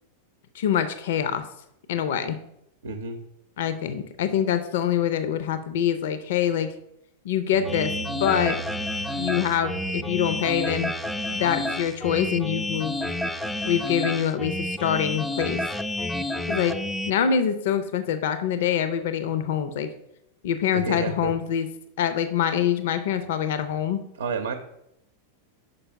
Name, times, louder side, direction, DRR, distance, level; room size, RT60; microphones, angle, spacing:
voice 1, 0.5-1.4 1.9-2.4 3.6-6.7 7.2-7.9 8.2-8.6 9.1-10.9 11.3-12.9 13.7-15.6 16.5-16.7 17.1-19.9 20.4-21.7 22.0-24.0, left 9 dB, 55° left, 11 dB, 0.5 m, -25 dB
voice 2, 2.8-3.2 20.7-21.3 24.2-24.5, right 5 dB, 65° right, 7 dB, 0.7 m, -29 dB
Bass guitar, 7.5-13.8, right 6 dB, 85° left, 0.8 m, -41 dB
sound 1, 7.6-17.1, left 1 dB, 5° left, 0.4 m, -30 dB
5.5 x 5.3 x 5.6 m, 0.81 s
figure-of-eight pair, 90°, 0 cm